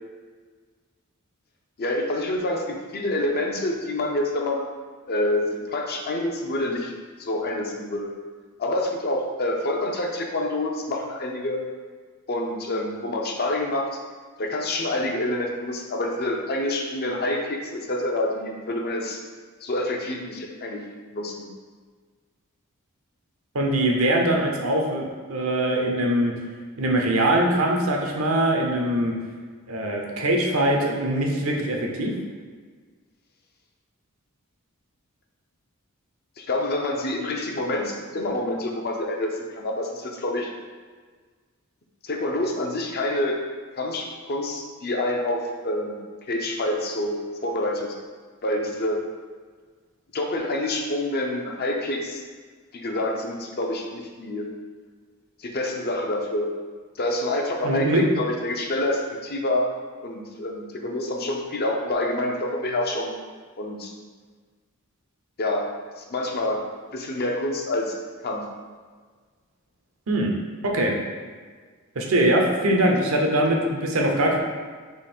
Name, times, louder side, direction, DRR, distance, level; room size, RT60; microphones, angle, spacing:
voice 1, 1.8-4.7 5.1-6.9 7.2-8.1 8.6-11.6 12.3-13.9 14.4-19.2 19.6-20.8 21.1-21.5 36.4-40.5 42.0-43.4 43.8-46.0 46.3-47.2 47.4-47.9 48.4-49.0 50.1-52.2 52.7-54.5 55.4-56.5 57.0-59.7 60.0-63.1 63.6-63.9 65.4-65.7 66.0-66.6 66.9-68.0 68.2-68.5, left 1 dB, 45° left, 1 dB, 0.6 m, -27 dB
voice 2, 23.5-26.3 26.8-29.1 29.7-32.1 57.6-58.0 70.1-70.3 70.6-71.0 72.0-74.4, right 1 dB, 70° right, 0 dB, 0.7 m, -22 dB
3.8 x 3.0 x 4.3 m, 1.5 s
head